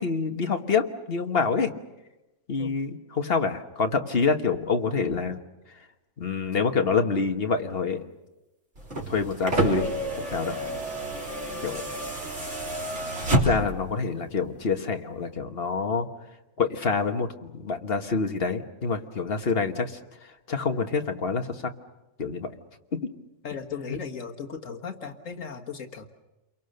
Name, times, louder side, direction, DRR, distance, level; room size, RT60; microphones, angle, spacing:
voice 1, 0.0-1.7 2.5-5.4 6.2-8.0 9.1-9.9 10.3-10.6 11.6-11.8 13.3-16.1 16.6-20.0 20.5-21.7 22.2-22.5 23.0-23.1 23.9-24.0, left 4 dB, 50° left, 6 dB, 1.6 m, -26 dB
sound 1, 8.8-13.9 15.1-15.2, right 2 dB, 60° right, 3.8 m, -29 dB
voice 2, 23.4-26.1, left 6 dB, 75° left, 3 dB, 1.9 m, -37 dB
29.5 x 23.0 x 6.7 m, 1.0 s
omnidirectional pair, 1.3 m